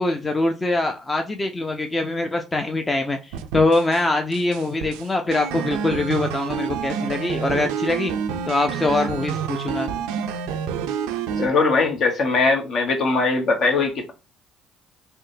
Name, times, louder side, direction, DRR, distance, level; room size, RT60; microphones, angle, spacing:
voice 1, 0.0-8.1 8.5-9.9, left 2 dB, 25° left, 0.5 m, -23 dB
sound 1, 3.3-4.0 4.3-11.5, right 7 dB, 80° right, 0.3 m, -28 dB
voice 2, 11.3-14.1, left 3 dB, 60° left, 0.9 m, -20 dB
3.5 x 2.1 x 2.7 m
hypercardioid pair, 55°, 0 cm